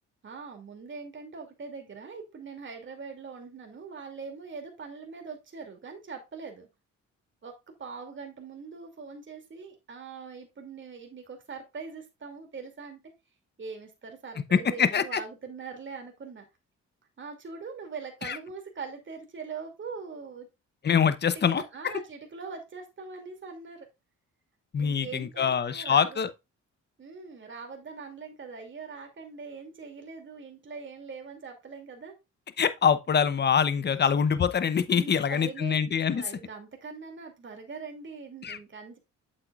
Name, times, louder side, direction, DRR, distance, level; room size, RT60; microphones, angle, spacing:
voice 1, 0.2-6.7 7.4-7.5 7.8-13.0 13.6-16.5 17.2-20.5 21.3-23.9 24.8-26.2 27.0-32.1 33.8-34.0 34.9-35.7 36.1-39.0, right 5 dB, 40° right, 2.7 m, -42 dB
voice 2, 14.5-15.2 18.2-18.4 20.8-21.6 24.7-26.3 32.6-36.2 38.4-38.6, left 7 dB, 35° left, 0.8 m, -24 dB
8.2 x 7.6 x 2.4 m
cardioid pair, 90°, 30 cm